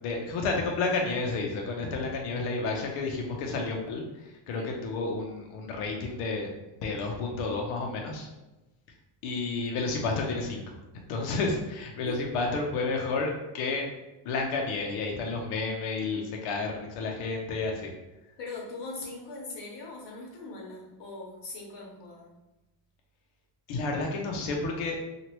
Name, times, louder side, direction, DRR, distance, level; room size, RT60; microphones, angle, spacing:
voice 1, 0.0-4.0 4.5-6.5 6.8-8.3 9.2-10.6 11.1-13.9 14.3-17.9 23.7-25.0, left 3 dB, 80° left, 1 dB, 0.7 m, -31 dB
voice 2, 12.0-12.5 18.4-22.3, left 3 dB, 55° left, -2 dB, 1.1 m, -41 dB
2.9 x 2.5 x 2.9 m, 1.0 s
cardioid pair, 140°, 50 cm